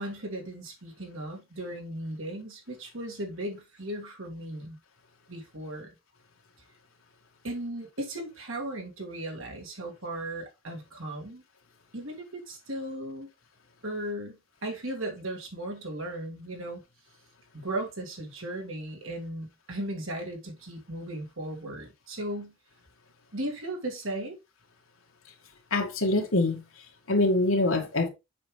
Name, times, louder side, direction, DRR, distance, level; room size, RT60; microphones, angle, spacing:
voice 1, 0.0-4.8 5.3-5.9 7.4-11.4 11.9-13.3 13.8-16.8 17.5-22.5 23.3-24.4, right 1 dB, 65° right, 2.4 m, -36 dB
voice 2, 25.7-28.1, left 2 dB, 70° left, 1.9 m, -25 dB
7.5 x 5.7 x 3.3 m
head